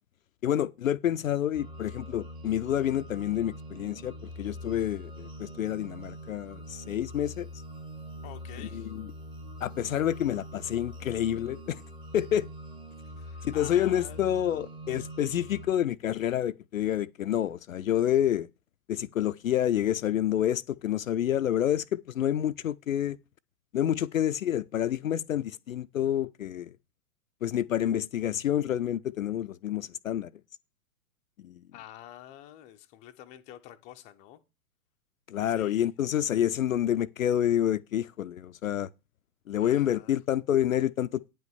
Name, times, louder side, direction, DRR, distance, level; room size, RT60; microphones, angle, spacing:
voice 1, 0.4-7.5 8.7-9.1 9.6-11.8 12.1-12.5 13.4-18.5 18.9-23.2 23.7-26.8 27.4-30.3 31.4-31.6 35.3-38.9 39.5-41.3, left 11 dB, 60° left, 0.5 m, -28 dB
sound 1, 1.5-15.7, equal, 10° right, 1.1 m, -43 dB
voice 2, 8.2-8.9 13.0-14.2 31.7-34.4 35.5-35.9 39.6-40.1, left 12 dB, 15° left, 0.6 m, -48 dB
9.2 x 5.3 x 7.0 m
figure-of-eight pair, 105°, 45 cm